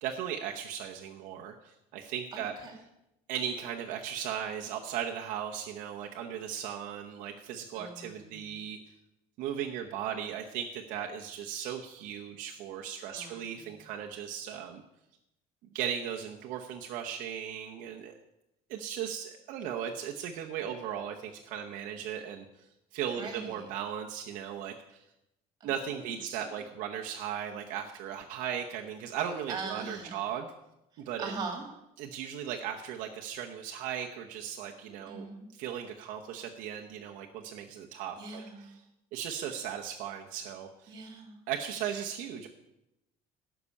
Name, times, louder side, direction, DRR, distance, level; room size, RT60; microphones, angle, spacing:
voice 1, 0.0-2.5 3.3-8.8 9.4-14.8 15.7-18.1 18.7-22.4 22.9-25.0 25.6-30.5 31.0-31.3 32.0-35.3 35.5-38.8 39.1-40.9 41.5-42.5, right 9 dB, 65° right, 1 dB, 0.9 m, -37 dB
voice 2, 2.3-2.8 7.7-8.4 13.1-13.6 23.2-23.5 26.2-26.4 29.5-30.2 31.2-31.6 35.1-35.5 38.2-38.7 40.9-41.4 41.9-42.0, right 4 dB, 25° right, 4 dB, 2.3 m, -41 dB
12.5 x 6.0 x 8.4 m, 0.89 s
cardioid pair, 180°, 15 cm